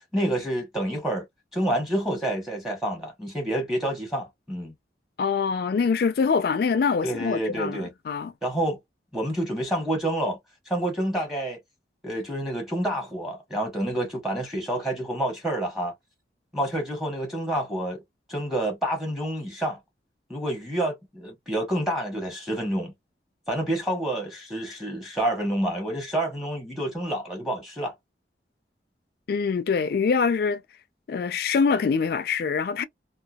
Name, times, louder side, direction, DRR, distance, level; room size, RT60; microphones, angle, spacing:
voice 1, 0.1-1.3 1.5-4.7 7.0-7.9 8.4-8.8 9.1-10.4 10.7-11.6 12.0-15.9 16.5-18.0 18.3-19.8 20.3-22.9 23.5-27.9, right 1 dB, ahead, 0.8 m, -28 dB
voice 2, 5.2-8.3 29.3-30.6 31.1-32.8, left 5 dB, 55° left, 0.3 m, -24 dB
2.7 x 2.2 x 2.2 m
head